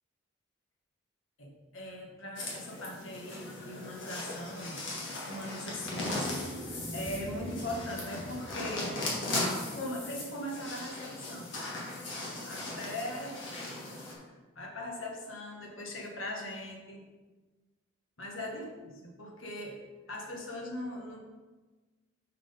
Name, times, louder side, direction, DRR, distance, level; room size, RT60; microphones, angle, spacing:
voice 1, 1.4-4.8 5.3-9.0 9.4-11.5 12.4-13.4 14.5-17.0 18.2-19.8 20.1-21.2, left 1 dB, 85° left, 0 dB, 1.5 m, -40 dB
sound 1, 2.4-14.1, left 2 dB, 65° left, 1.8 m, -38 dB
sound 2, 5.6-9.7, equal, 25° right, 1.1 m, -45 dB
5.9 x 4.6 x 5.4 m, 1.3 s
head